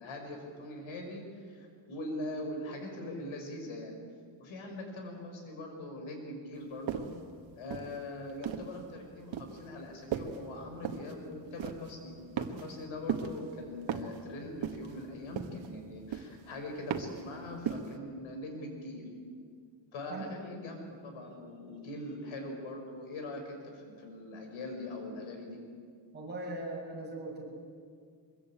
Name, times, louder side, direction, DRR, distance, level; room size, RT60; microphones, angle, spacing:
voice 1, 0.0-3.9 4.4-7.1 7.6-19.1 19.9-25.6, left 1 dB, 85° left, 3 dB, 6.1 m, -42 dB
sound 1, 6.9-7.2 7.7-8.8 9.3-9.6 10.1-10.4 10.9-11.1 11.6-11.9 12.4-12.8 13.1-13.5 13.9-14.2 14.6-15.0 15.4-15.8 16.1-16.5 16.9-17.2 17.7-18.0, right 8 dB, 75° right, 1.8 m, -36 dB
voice 2, 26.1-27.5, right 2 dB, 20° right, -2 dB, 6.5 m, -39 dB
24.0 x 22.0 x 9.0 m, 2.2 s
cardioid pair, 170°, 47 cm